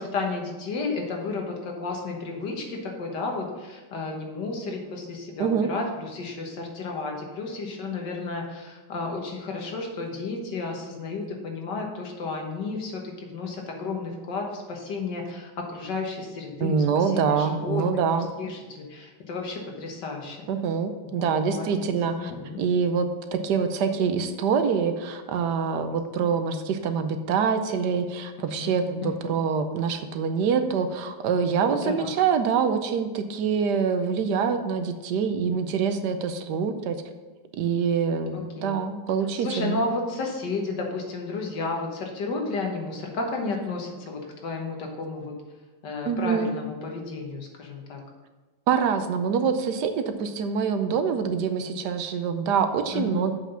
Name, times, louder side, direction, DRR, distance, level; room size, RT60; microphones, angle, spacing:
voice 1, 0.0-17.8 18.4-20.4 21.0-21.9 22.2-22.6 29.0-29.2 31.8-32.1 38.3-38.8 39.4-45.3 45.8-48.0 52.9-53.3, left 3 dB, 80° left, 1 dB, 2.0 m, -32 dB
voice 2, 16.6-18.3 20.5-22.3 22.6-37.0 37.5-39.8 46.1-46.5 48.7-53.3, right 6 dB, 75° right, 8 dB, 1.3 m, -25 dB
7.4 x 5.8 x 5.5 m, 1.3 s
omnidirectional pair, 1.8 m